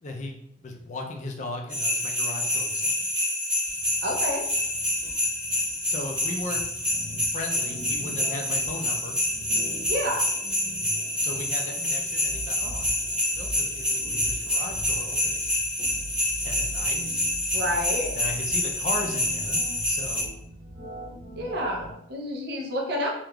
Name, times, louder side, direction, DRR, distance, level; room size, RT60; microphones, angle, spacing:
voice 1, 0.0-3.1 5.9-6.6 7.3-9.2 11.2-13.0 13.4-15.4 16.4-17.0 18.1-19.6 19.9-20.4, left 2 dB, 40° left, 2 dB, 0.4 m, -37 dB
sound 1, 1.7-20.2, left 1 dB, 5° right, 1.2 m, -27 dB
sound 2, 3.7-21.9, equal, 80° right, 0.9 m, -42 dB
voice 2, 4.0-4.4 9.9-10.3 17.5-18.2 21.4-23.1, equal, 60° right, 0 dB, 0.6 m, -29 dB
3.3 x 2.4 x 2.2 m, 0.76 s
head